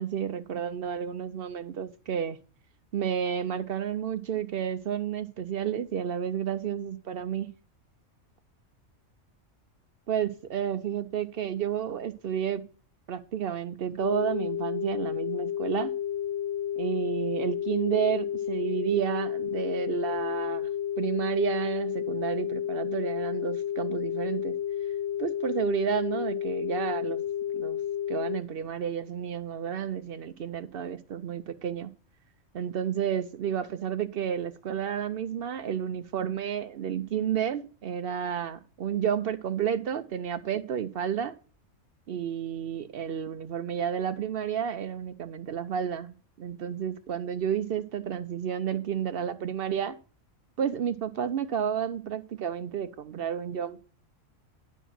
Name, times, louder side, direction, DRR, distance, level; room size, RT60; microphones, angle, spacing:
voice 1, 0.0-2.4 2.9-7.5 10.1-12.6 13.1-15.9 16.8-20.7 21.0-24.6 25.2-27.2 27.5-27.8 28.1-31.9 32.5-41.3 42.1-50.0 50.6-53.8, right 9 dB, 60° right, 0.7 m, -31 dB
sound 1, 14.0-28.4, left 10 dB, 45° left, 0.4 m, -31 dB
10.0 x 4.6 x 5.8 m
omnidirectional pair, 1.4 m